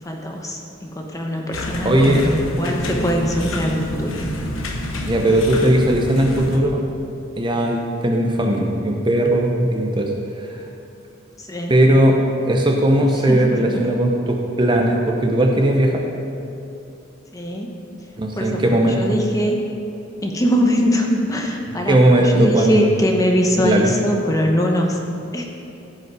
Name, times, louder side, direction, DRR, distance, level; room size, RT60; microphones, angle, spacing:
voice 1, 0.0-4.1 5.2-5.3 11.4-11.7 13.3-13.8 17.3-17.8 18.4-19.5 20.2-25.0 25.3-25.5, equal, 15° left, 1 dB, 0.9 m, -22 dB
sound 1, 1.5-6.6, left 1 dB, 85° left, 1.0 m, -28 dB
voice 2, 1.8-2.2 5.1-6.8 7.4-10.1 10.4-10.6 11.7-12.2 12.4-16.0 18.2-19.0 21.9-22.9 23.6-24.0, right 1 dB, 25° right, 1 dB, 0.7 m, -17 dB
15.5 x 5.3 x 4.8 m, 2.7 s
head